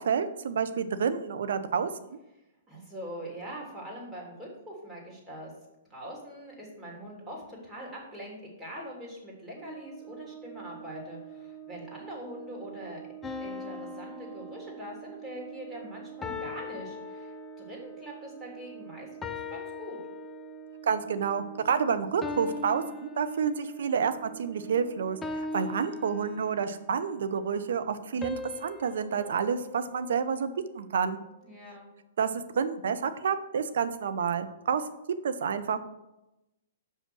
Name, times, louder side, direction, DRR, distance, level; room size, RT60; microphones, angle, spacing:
voice 1, 0.0-2.2 20.8-31.2 32.2-32.3 32.6-34.8 35.2-35.8, right 6 dB, 70° right, 11 dB, 0.7 m, -29 dB
voice 2, 2.7-5.5 5.9-13.0 13.4-20.0 31.4-31.9, equal, 15° right, -3 dB, 3.1 m, -43 dB
Brass instrument, 9.5-25.9, right 10 dB, 40° right, 1.8 m, -46 dB
sound 1, 13.2-15.2 16.2-17.9 19.2-20.8 22.2-23.9 25.2-26.8 28.2-30.5, left 4 dB, 15° left, 0.5 m, -40 dB
5.7 x 5.5 x 6.2 m, 0.94 s
hypercardioid pair, 120°, 0 cm